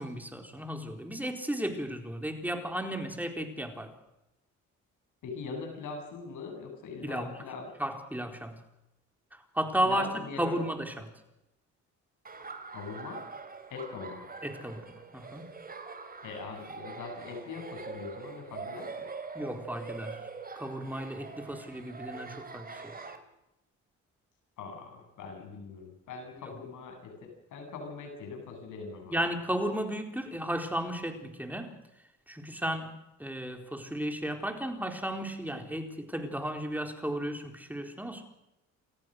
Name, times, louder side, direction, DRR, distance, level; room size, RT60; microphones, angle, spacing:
voice 1, 0.0-3.9 7.0-7.3 7.8-8.6 9.3-10.1 10.4-11.1 14.4-14.8 15.1-15.4 19.3-20.2 20.5-23.2 29.1-31.7 32.3-32.9 33.2-38.2, right 1 dB, 5° right, 5 dB, 4.2 m, -34 dB
voice 2, 5.2-7.7 9.8-10.6 12.7-13.2 13.7-14.3 16.2-19.1 24.6-29.2, left 5 dB, 80° left, 3 dB, 8.0 m, -41 dB
Laughter, 12.2-23.2, right 4 dB, 30° right, 3.2 m, -44 dB
29.5 x 14.5 x 6.6 m, 0.90 s
cardioid pair, 90°, 30 cm